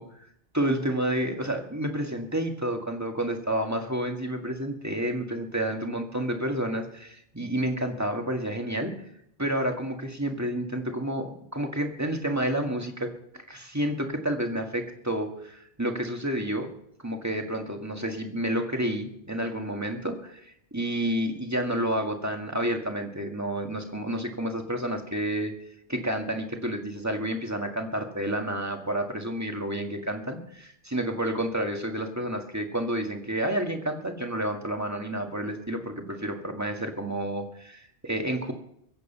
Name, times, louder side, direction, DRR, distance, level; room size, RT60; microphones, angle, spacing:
voice 1, 0.5-8.9 9.4-16.7 17.0-25.5 25.9-38.5, right 1 dB, 15° right, 3 dB, 1.9 m, -30 dB
23.0 x 8.2 x 5.6 m, 0.72 s
omnidirectional pair, 1.2 m